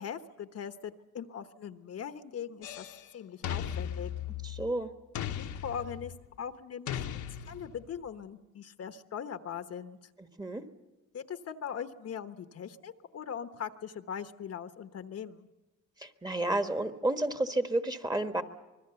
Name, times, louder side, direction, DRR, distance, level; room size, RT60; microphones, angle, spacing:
voice 1, 0.0-2.9 3.1-4.1 5.3-7.0 7.4-10.0 11.1-15.5, left 8 dB, 55° left, 9 dB, 1.1 m, -40 dB
sound 1, 2.6-3.0 3.4-4.7 5.1-6.2 6.9-7.9, left 9 dB, 75° left, 1.2 m, -37 dB
voice 2, 4.4-4.9 10.4-10.6 16.0-18.4, right 2 dB, 15° right, 7 dB, 1.5 m, -31 dB
25.5 x 21.5 x 6.9 m, 1.1 s
cardioid pair, 90°, 30 cm